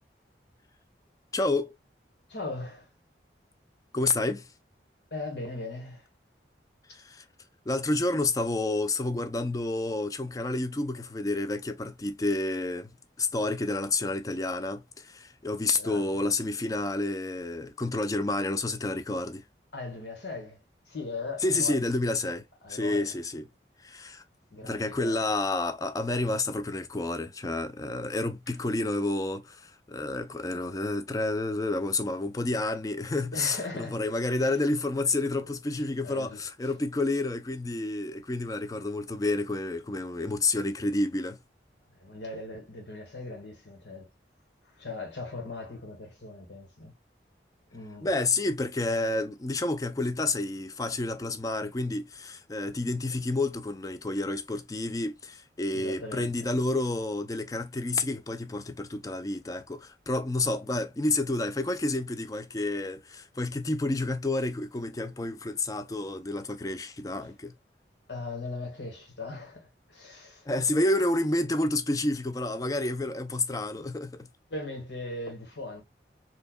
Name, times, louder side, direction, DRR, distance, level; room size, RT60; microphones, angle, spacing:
voice 1, 1.3-1.7 3.9-4.5 6.9-7.2 7.7-12.9 13.2-19.4 21.4-22.4 22.7-23.5 23.8-24.2 24.6-41.4 48.0-67.6 70.5-74.3, left 2 dB, 20° left, 0.4 m, -29 dB
voice 2, 2.3-2.9 5.1-6.1 15.8-16.2 19.7-21.9 22.6-23.2 24.5-25.3 33.3-34.0 34.4-34.6 35.7-35.8 36.0-36.4 41.9-44.1 44.6-46.9 47.7-48.1 55.7-56.5 68.1-70.5 73.8-73.9 74.5-75.8, left 2 dB, 80° left, 1.8 m, -39 dB
4.5 x 2.8 x 2.2 m
head